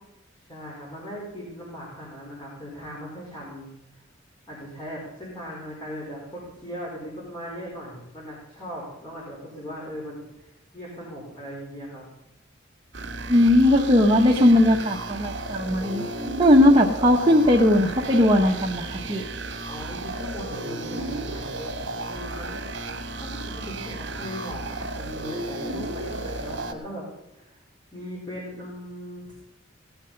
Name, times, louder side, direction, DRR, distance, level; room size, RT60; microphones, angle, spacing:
voice 1, 0.4-3.7 4.5-12.0 19.7-22.8 23.2-27.0 27.3-27.6 27.9-29.3, equal, 20° left, -5 dB, 4.6 m, -38 dB
sound 1, 12.9-26.7, right 2 dB, 60° right, 2.4 m, -34 dB
voice 2, 13.3-16.0 16.4-19.2, left 1 dB, 25° right, -1 dB, 1.3 m, -18 dB
18.0 x 10.5 x 5.4 m, 0.93 s
head